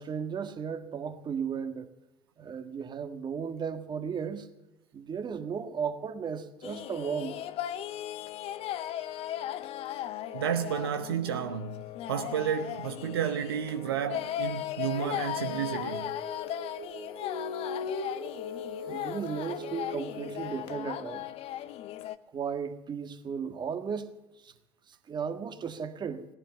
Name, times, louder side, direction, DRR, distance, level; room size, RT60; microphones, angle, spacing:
voice 1, 0.0-1.9 2.4-4.5 4.9-7.3 18.9-21.2 22.3-24.1 24.4-24.5 25.1-26.3, right 6 dB, 35° right, 1.6 m, -35 dB
sound 1, 6.6-22.1, left 12 dB, 50° left, 0.7 m, -37 dB
voice 2, 10.3-16.1, right 9 dB, 80° right, 0.7 m, -32 dB
Female singing, 14.9-20.6, left 3 dB, 70° left, 2.2 m, -39 dB
16.5 x 11.0 x 7.1 m
figure-of-eight pair, 65°, 13 cm